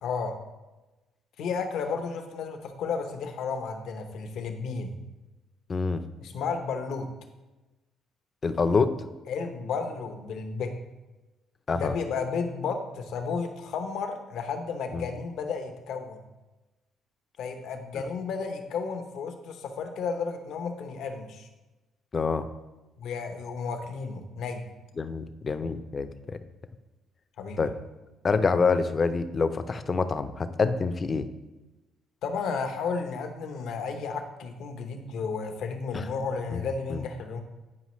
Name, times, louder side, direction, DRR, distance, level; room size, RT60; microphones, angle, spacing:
voice 1, 0.0-0.4 1.4-5.0 6.2-7.1 9.3-10.7 11.7-16.2 17.4-21.5 23.0-24.7 27.4-27.6 32.2-37.4, left 5 dB, 75° left, 6 dB, 0.9 m, -33 dB
voice 2, 5.7-6.0 8.4-8.9 11.7-11.9 14.9-15.1 22.1-22.5 25.0-26.4 27.6-27.7 28.2-31.3 35.9-36.0 36.5-36.6 36.9-37.0, left 4 dB, 35° left, 10 dB, 0.5 m, -26 dB
9.6 x 5.1 x 3.1 m, 1.1 s
cardioid pair, 90°, 0 cm